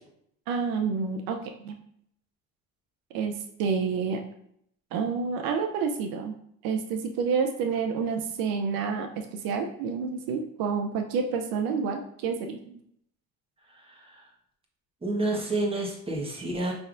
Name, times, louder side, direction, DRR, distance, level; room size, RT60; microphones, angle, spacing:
voice 1, 0.5-1.4 1.6-1.7 3.1-4.2 4.9-6.3 6.6-12.8, right 5 dB, 80° right, 5 dB, 0.6 m, -29 dB
voice 2, 13.7-14.3 15.0-16.7, right 2 dB, 15° right, -1 dB, 1.2 m, -30 dB
5.4 x 3.4 x 2.5 m, 0.69 s
supercardioid pair, 90°, 35 cm